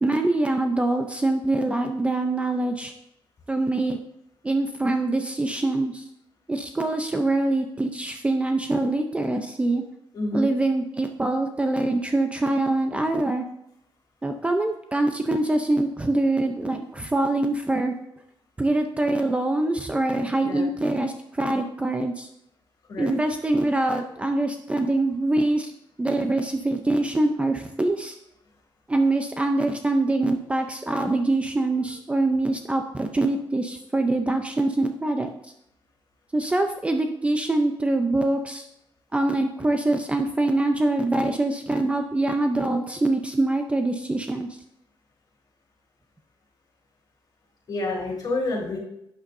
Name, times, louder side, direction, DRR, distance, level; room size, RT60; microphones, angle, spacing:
voice 1, 0.0-2.9 3.5-4.0 4.4-6.0 6.5-9.8 10.3-13.4 14.2-17.9 18.6-22.3 23.0-25.7 26.0-28.2 28.9-35.3 36.3-38.7 39.1-44.5, right 2 dB, 15° right, 5 dB, 0.5 m, -24 dB
voice 2, 10.1-10.5 20.4-20.7 22.9-23.1 47.7-48.8, left 2 dB, 45° left, -3 dB, 3.7 m, -28 dB
12.0 x 8.8 x 2.6 m, 0.81 s
wide cardioid pair, 160°, 9 cm